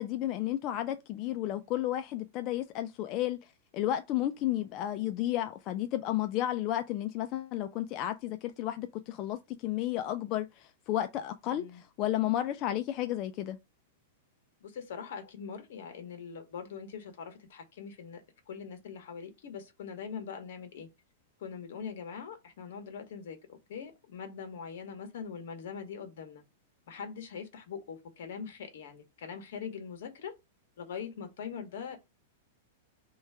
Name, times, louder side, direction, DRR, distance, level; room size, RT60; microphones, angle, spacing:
voice 1, 0.0-3.4 3.7-13.6, left 13 dB, 35° left, 0.4 m, -32 dB
voice 2, 11.5-11.8 14.6-20.9 21.4-26.4 26.9-30.3 30.8-32.0, left 6 dB, 70° left, 1.3 m, -42 dB
3.2 x 3.1 x 4.6 m
supercardioid pair, 155°, 0 cm